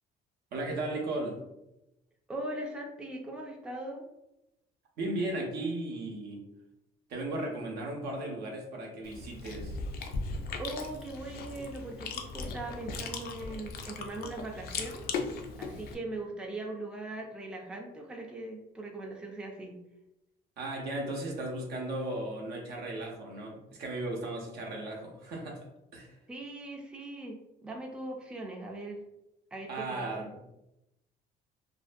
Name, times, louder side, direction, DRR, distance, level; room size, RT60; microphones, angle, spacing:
voice 1, 0.5-1.4 5.0-6.4 7.1-9.8 20.6-25.6 25.9-26.1 29.7-30.4, right 2 dB, 75° right, 1 dB, 0.6 m, -36 dB
voice 2, 2.3-4.1 10.6-15.0 15.6-19.8 26.3-29.0 29.5-30.1, right 2 dB, 5° right, 0 dB, 0.4 m, -40 dB
Chewing mastication, 9.0-15.9, left 4 dB, 70° left, 0.4 m, -38 dB
2.5 x 2.2 x 2.5 m, 0.90 s
cardioid pair, 110°, 17 cm